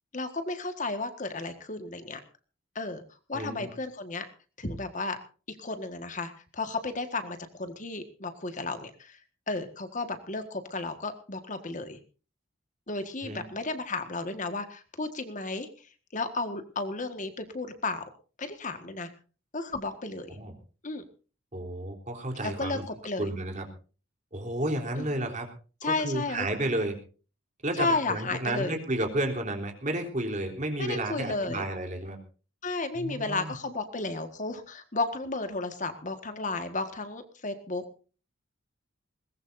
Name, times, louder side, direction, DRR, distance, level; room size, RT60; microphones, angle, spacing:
voice 1, 0.1-2.2 2.7-3.0 3.3-4.2 4.6-5.2 5.5-9.2 9.5-12.0 12.9-15.7 16.1-18.0 18.4-19.1 19.5-20.4 20.8-21.0 22.4-22.8 23.0-23.3 25.0-25.3 25.8-26.5 27.8-28.7 30.8-31.6 32.6-37.8, left 3 dB, 40° left, 8 dB, 1.7 m, -33 dB
voice 2, 3.3-3.7 13.2-13.4 20.3-20.5 21.5-22.8 23.2-23.7 24.3-25.5 25.8-27.0 27.6-32.2 33.0-33.6, right 1 dB, 40° right, 3 dB, 3.6 m, -32 dB
21.5 x 19.0 x 2.7 m, 0.37 s
head